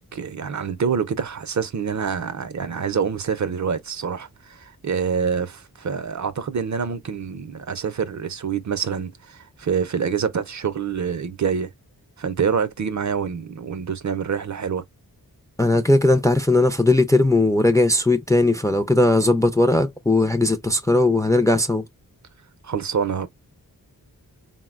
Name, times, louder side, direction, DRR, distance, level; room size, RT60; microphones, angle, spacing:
voice 1, 0.1-11.7 12.2-14.8 22.6-23.3, right 6 dB, 50° right, 0.5 m, -26 dB
voice 2, 15.6-21.8, left 2 dB, 10° left, 0.4 m, -18 dB
3.7 x 2.1 x 2.3 m
wide cardioid pair, 100°, 37 cm